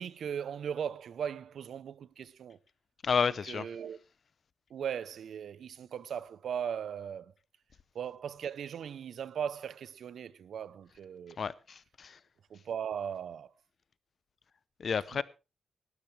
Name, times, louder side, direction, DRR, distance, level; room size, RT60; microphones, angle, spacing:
voice 1, 0.0-2.6 3.5-4.0 4.7-7.3 7.9-11.4 12.5-13.5, right 8 dB, 80° right, 0.7 m, -38 dB
voice 2, 3.0-3.7 11.4-12.2 14.8-15.2, left 6 dB, 50° left, 0.7 m, -31 dB
19.0 x 12.0 x 3.3 m
wide cardioid pair, 155°, 0 cm